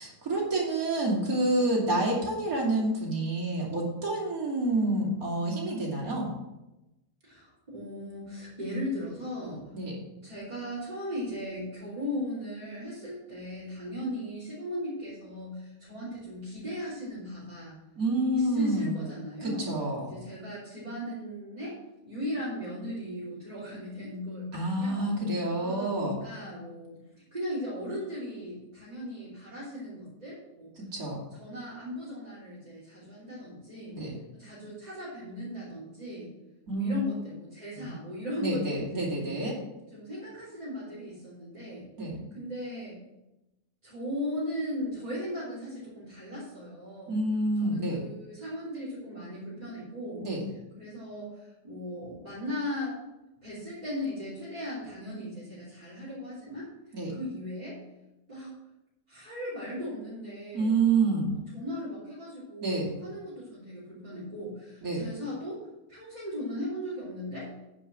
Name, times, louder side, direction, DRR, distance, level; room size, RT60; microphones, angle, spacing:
voice 1, 0.0-6.3 9.7-9.9 18.0-19.0 19.4-20.1 24.5-26.2 30.8-31.2 33.9-34.1 36.7-36.9 37.7-37.9 38.4-39.6 42.0-42.2 47.1-48.0 50.2-50.4 56.9-57.1 60.5-61.4 62.6-62.9 64.8-65.1, right 2 dB, 55° right, -3 dB, 3.1 m, -28 dB
voice 2, 7.2-9.6 10.2-17.8 18.3-19.7 20.0-21.8 22.0-25.1 25.6-27.0 27.3-30.8 31.3-34.0 34.4-36.3 36.7-39.1 39.9-41.9 42.3-43.0 43.8-47.2 47.6-50.3 50.8-53.0 53.4-56.7 57.1-57.8 58.3-58.5 59.1-60.8 61.5-65.6 65.9-67.5, left 1 dB, 25° right, -9 dB, 3.3 m, -37 dB
9.8 x 5.1 x 7.4 m, 0.97 s
omnidirectional pair, 1.8 m